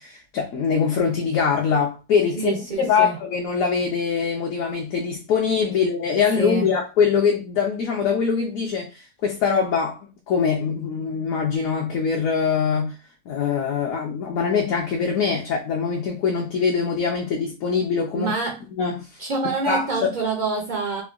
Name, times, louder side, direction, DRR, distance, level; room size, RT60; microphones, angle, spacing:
voice 1, 0.0-10.0 10.3-12.9 13.3-18.3 18.8-19.1 19.7-19.9, left 6 dB, 70° left, 1.0 m, -23 dB
voice 2, 2.4-3.2 6.3-6.7 18.1-18.6 19.2-21.0, right 3 dB, 75° right, 0.4 m, -26 dB
3.6 x 2.1 x 2.4 m
omnidirectional pair, 1.6 m